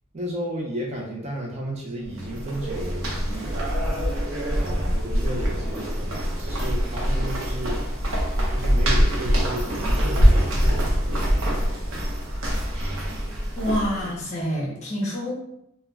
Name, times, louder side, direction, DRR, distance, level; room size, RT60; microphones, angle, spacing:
voice 1, 0.1-11.9, equal, 35° right, -2 dB, 0.5 m, -33 dB
sound 1, 2.0-14.2, equal, 85° right, 0.6 m, -24 dB
voice 2, 13.6-15.3, equal, 35° left, -4 dB, 0.7 m, -27 dB
2.3 x 2.1 x 3.1 m, 0.78 s
head